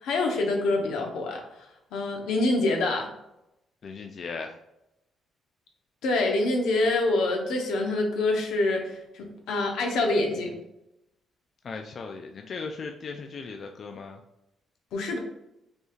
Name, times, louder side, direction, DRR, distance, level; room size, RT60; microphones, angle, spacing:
voice 1, 0.0-1.4 1.9-3.1 6.0-10.5 14.9-15.2, left 2 dB, 85° left, 2 dB, 0.9 m, -26 dB
voice 2, 3.8-4.6 11.6-14.2, left 4 dB, 50° left, 3 dB, 0.4 m, -37 dB
5.3 x 3.1 x 2.4 m, 0.87 s
cardioid pair, 90°, 0 cm